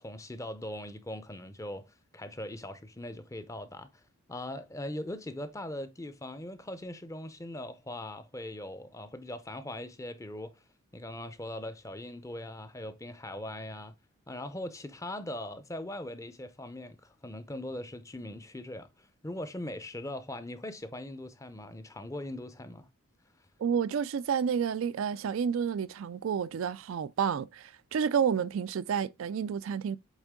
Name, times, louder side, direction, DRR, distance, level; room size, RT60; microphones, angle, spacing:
voice 1, 0.0-3.9 4.3-10.5 10.9-13.9 14.3-22.9, left 1 dB, 15° left, 0.6 m, -40 dB
voice 2, 23.6-30.0, right 7 dB, 65° right, 0.3 m, -30 dB
8.2 x 3.5 x 3.6 m
head